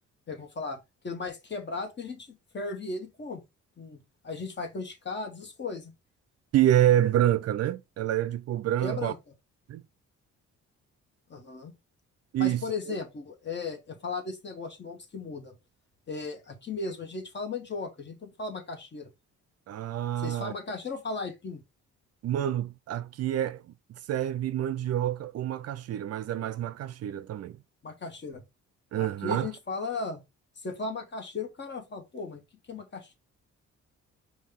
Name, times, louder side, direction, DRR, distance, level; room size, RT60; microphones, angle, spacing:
voice 1, 0.3-3.4 3.8-5.9 8.8-9.2 11.3-11.7 12.4-15.6 16.1-19.1 20.2-21.6 27.8-28.4 28.9-30.2 30.6-32.4 32.7-33.1, left 4 dB, 35° left, 1.3 m, -36 dB
voice 2, 6.5-9.1 9.7-9.8 12.3-13.0 19.7-20.5 22.2-27.6 28.9-29.5, right 12 dB, 55° right, 0.4 m, -27 dB
5.3 x 2.6 x 3.6 m
cardioid pair, 90°, 30 cm